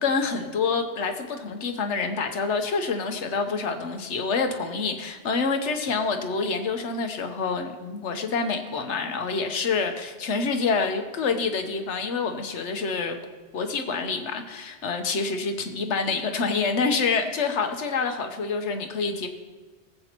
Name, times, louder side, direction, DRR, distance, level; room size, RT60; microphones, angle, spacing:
voice 1, 0.0-13.2 13.5-19.3, left 4 dB, 80° left, 6 dB, 1.2 m, -27 dB
19.0 x 7.8 x 3.0 m, 1.3 s
omnidirectional pair, 1.2 m